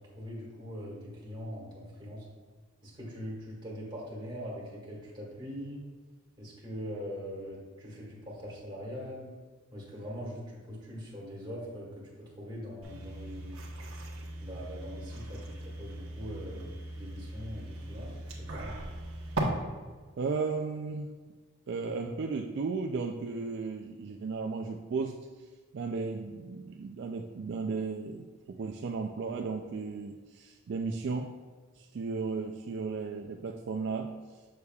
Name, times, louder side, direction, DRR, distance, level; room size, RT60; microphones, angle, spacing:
voice 1, 0.1-2.2 2.8-5.8 6.4-9.3 9.7-11.9 12.2-13.5 14.4-18.1 18.5-18.7, equal, 20° right, -5 dB, 1.7 m, -42 dB
sound 1, 12.8-19.4, right 2 dB, 75° right, 1.1 m, -40 dB
voice 2, 20.2-21.1 21.7-25.2 25.7-31.4 31.8-34.2, right 4 dB, 55° right, 2 dB, 0.3 m, -35 dB
6.8 x 6.5 x 2.3 m, 1.4 s
head